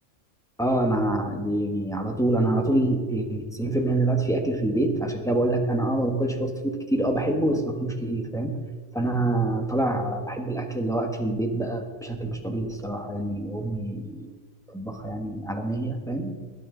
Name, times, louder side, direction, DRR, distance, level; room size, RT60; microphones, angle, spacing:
voice 1, 0.6-8.6 8.9-14.3 14.7-16.4, right 1 dB, 5° left, 3 dB, 1.2 m, -26 dB
20.5 x 9.6 x 3.9 m, 1.5 s
omnidirectional pair, 1.3 m